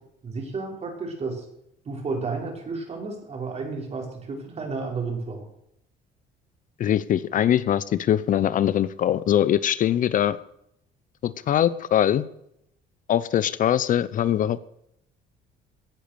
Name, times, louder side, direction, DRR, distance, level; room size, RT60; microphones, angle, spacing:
voice 1, 0.2-1.5 1.8-5.5, right 4 dB, 40° right, 1 dB, 5.5 m, -32 dB
voice 2, 6.8-10.4 11.2-12.2 13.1-14.6, left 10 dB, 50° left, 17 dB, 0.7 m, -22 dB
17.0 x 10.5 x 6.9 m, 0.77 s
cardioid pair, 110°, 17 cm